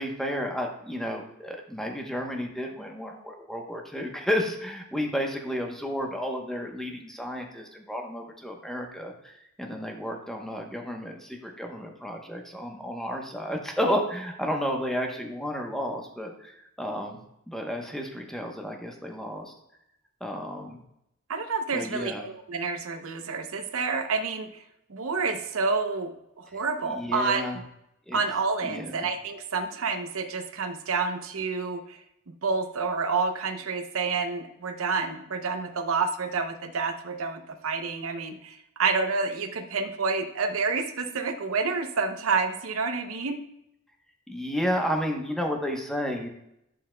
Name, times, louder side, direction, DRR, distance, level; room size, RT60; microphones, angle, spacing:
voice 1, 0.0-17.2 17.5-19.5 20.2-20.8 21.7-22.3 26.5-27.6 28.1-28.2 28.6-29.1 44.3-46.3, equal, ahead, 2 dB, 0.9 m, -32 dB
voice 2, 21.3-24.6 24.9-27.5 28.1-32.0 32.4-43.4, right 4 dB, 75° right, 7 dB, 0.7 m, -29 dB
11.0 x 5.6 x 2.2 m, 0.81 s
head